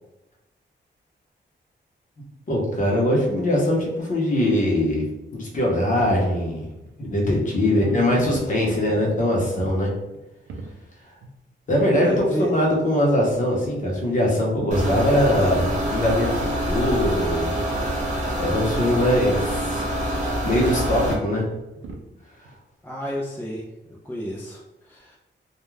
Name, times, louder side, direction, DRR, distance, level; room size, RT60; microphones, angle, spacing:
voice 1, 2.5-5.0 5.3-6.6 7.0-9.9 11.7-12.1 12.4-17.6 18.4-19.8 20.4-21.5 22.4-22.5, left 1 dB, 40° left, -2 dB, 0.7 m, -22 dB
sound 1, 6.0-7.4 7.8-8.6 9.2-9.8 10.1-10.8 11.2-11.3 12.5-12.6 13.6-13.7 14.7-14.9 15.3-15.6 16.0-16.1 16.3-16.4 16.9-17.0 17.7-18.0 18.5-18.9 19.5-19.6 20.1-20.2 20.9-21.4 21.8-22.1 22.4-22.6, right 2 dB, 85° right, 0.4 m, -39 dB
voice 2, 7.6-9.0 12.0-12.5 22.8-25.2, equal, 10° left, -3 dB, 0.3 m, -32 dB
sound 2, 14.7-21.1, equal, 40° right, 0.6 m, -26 dB
2.3 x 2.1 x 3.1 m, 0.99 s
wide cardioid pair, 150°, 19 cm